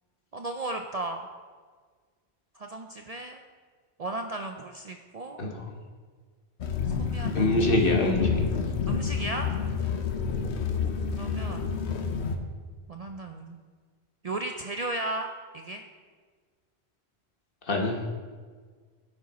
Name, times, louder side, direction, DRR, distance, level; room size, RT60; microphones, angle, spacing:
voice 1, 0.3-1.3 2.6-3.4 4.0-5.4 6.9-7.6 8.9-9.5 11.1-11.7 12.9-13.6 14.2-15.8, right 2 dB, 50° right, 4 dB, 0.5 m, -35 dB
voice 2, 5.4-5.7 7.3-8.4 10.3-10.5 17.7-18.1, left 2 dB, 60° left, 1 dB, 1.4 m, -25 dB
sound 1, 6.6-12.4, left 6 dB, 90° left, 1.1 m, -29 dB
10.0 x 7.3 x 4.2 m, 1.5 s
omnidirectional pair, 1.1 m